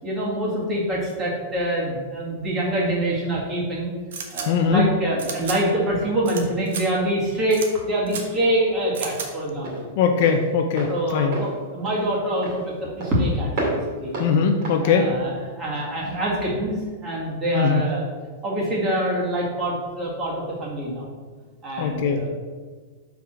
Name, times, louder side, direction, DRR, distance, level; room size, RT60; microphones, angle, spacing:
voice 1, 0.0-3.9 4.3-9.9 10.9-14.1 14.8-18.0 18.4-21.1 21.6-22.3, right 1 dB, 15° right, -4 dB, 1.8 m, -25 dB
sound 1, 4.1-4.5 5.2-5.6 6.2-6.4 6.7-6.8 7.5-7.7 8.1-8.2 8.9-9.3, right 6 dB, 70° right, 1.2 m, -32 dB
voice 2, 4.5-4.9 10.0-11.4 14.2-15.1 17.5-17.8 21.8-22.3, left 6 dB, 45° left, 5 dB, 0.6 m, -20 dB
Walk footsteps, 7.7-16.0, right 2 dB, 45° right, 2.4 m, -34 dB
5.9 x 4.9 x 6.0 m, 1.5 s
supercardioid pair, 175°, 0 cm